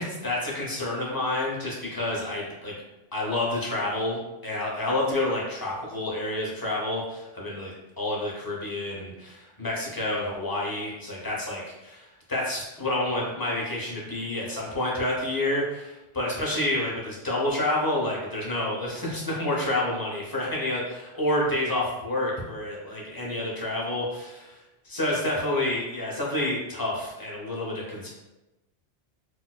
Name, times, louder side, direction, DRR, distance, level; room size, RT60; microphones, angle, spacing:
voice 1, 0.0-2.8 3.1-24.6 24.8-28.1, left 1 dB, 25° left, -4 dB, 0.6 m, -29 dB
4.1 x 2.3 x 2.2 m, 1.0 s
omnidirectional pair, 1.1 m